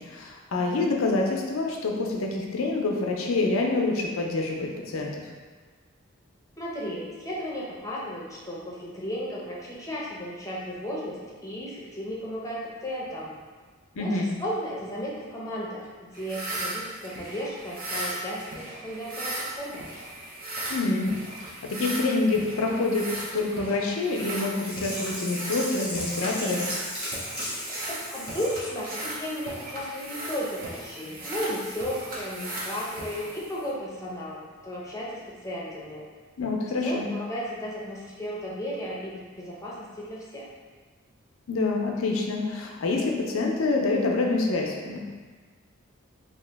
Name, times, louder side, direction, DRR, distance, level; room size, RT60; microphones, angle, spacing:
voice 1, 0.0-5.2 14.0-14.3 20.7-26.7 36.4-37.1 41.5-45.0, left 3 dB, 85° left, 0 dB, 0.5 m, -27 dB
voice 2, 6.6-13.3 14.0-19.8 28.1-36.1 36.8-40.5, equal, 15° left, -5 dB, 0.6 m, -34 dB
sound 1, 16.1-33.7, right 1 dB, 45° right, 0.6 m, -37 dB
Sink (filling or washing), 24.6-28.8 29.2-29.3, equal, 5° right, 0.9 m, -35 dB
2.9 x 2.8 x 3.4 m, 1.4 s
head